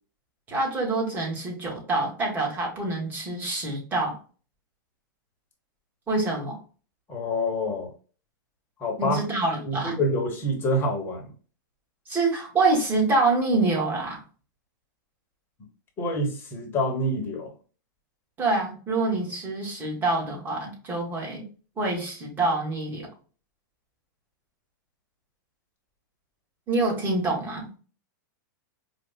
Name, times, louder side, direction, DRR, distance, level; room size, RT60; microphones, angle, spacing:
voice 1, 0.5-4.2 6.1-6.6 9.0-10.0 12.1-14.2 18.4-21.5 21.8-23.1 26.7-27.7, right 2 dB, 20° right, -1 dB, 1.4 m, -26 dB
voice 2, 7.1-7.9 8.8-9.2 9.6-11.3 16.0-17.5, left 1 dB, 20° left, 2 dB, 1.1 m, -27 dB
5.1 x 2.4 x 2.2 m, 0.38 s
supercardioid pair, 145°, 11 cm